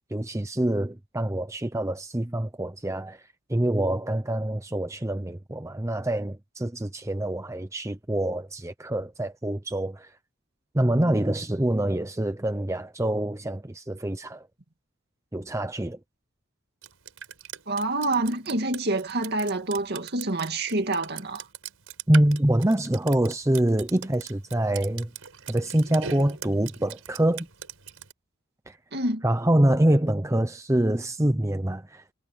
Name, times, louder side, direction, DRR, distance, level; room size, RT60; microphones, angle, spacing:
voice 1, 0.1-3.2 3.5-10.1 10.7-14.5 15.3-16.0 22.1-25.1 25.5-27.5 28.7-28.8 29.2-32.1, right 1 dB, 15° right, 0.7 m, -25 dB
Drip, 16.8-28.1, right 8 dB, 90° right, 4.8 m, -41 dB
voice 2, 17.7-21.4 28.9-29.2, right 2 dB, 50° right, 2.3 m, -27 dB
head